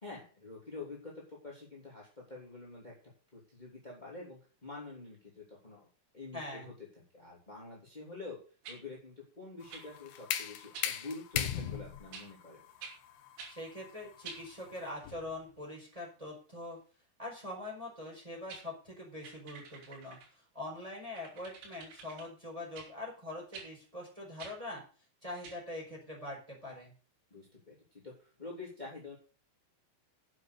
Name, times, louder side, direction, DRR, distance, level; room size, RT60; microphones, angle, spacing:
voice 1, 0.0-2.9 3.3-5.9 6.1-6.7 7.1-8.4 8.7-12.6 27.3-29.2, left 3 dB, 15° left, -3 dB, 1.9 m, -47 dB
voice 2, 6.3-6.7 13.5-16.8 17.2-24.8 25.2-26.9, left 1 dB, 5° right, -2 dB, 4.0 m, -43 dB
sound 1, 8.6-8.8 9.7-9.9 10.7-10.9 12.1-12.3 12.8-13.0 13.4-13.6 14.2-14.5 18.1-18.2 18.5-18.7 19.2-20.3 21.1-22.3 22.8-22.9 23.5-23.7 24.4-24.6 25.4-25.6, right 5 dB, 75° right, 5.3 m, -48 dB
sound 2, 9.6-15.4, left 10 dB, 70° left, 2.5 m, -39 dB
9.0 x 8.1 x 6.6 m, 0.39 s
omnidirectional pair, 5.9 m